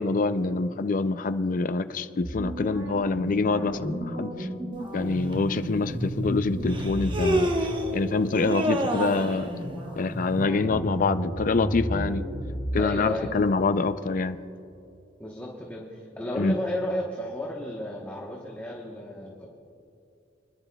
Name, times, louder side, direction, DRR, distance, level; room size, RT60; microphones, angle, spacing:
voice 1, 0.0-4.5 4.9-7.5 7.9-9.5 10.0-12.3 12.7-14.4 16.4-16.6, left 3 dB, 45° left, 11 dB, 0.4 m, -26 dB
sound 1, 2.2-7.3 7.7-8.0 8.4-12.8, equal, 75° right, 3.2 m, -33 dB
Human voice, 5.3-5.4 6.7-7.9 8.4-9.4, right 1 dB, 25° right, 0.9 m, -27 dB
voice 2, 12.7-13.3 15.2-19.5, left 1 dB, 10° left, -3 dB, 1.0 m, -33 dB
29.0 x 11.0 x 2.3 m, 2.6 s
head